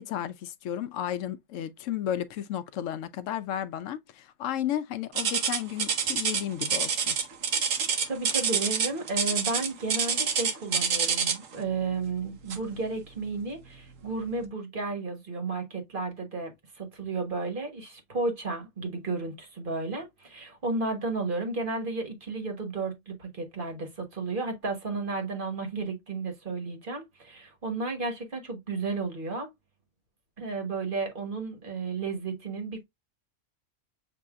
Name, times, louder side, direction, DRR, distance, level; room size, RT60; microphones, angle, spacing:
voice 1, 0.0-7.2, left 10 dB, 80° left, 0.9 m, -33 dB
sound 1, 5.2-11.5 12.5-12.8 13.3-13.4 14.1-14.2, right 6 dB, 80° right, 1.2 m, -27 dB
voice 2, 8.1-29.5 30.4-32.8, right 3 dB, 45° right, 1.3 m, -33 dB
6.8 x 2.7 x 2.4 m
omnidirectional pair, 1.3 m